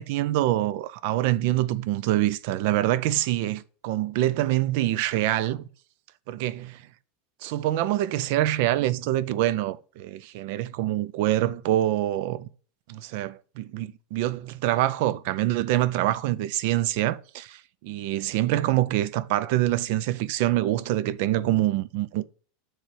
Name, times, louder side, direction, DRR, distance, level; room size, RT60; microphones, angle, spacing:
voice 1, 0.0-5.7 6.3-6.8 7.4-12.5 12.9-22.2, right 14 dB, 50° right, 0.4 m, -25 dB
7.3 x 3.1 x 4.7 m
supercardioid pair, 180°, 0 cm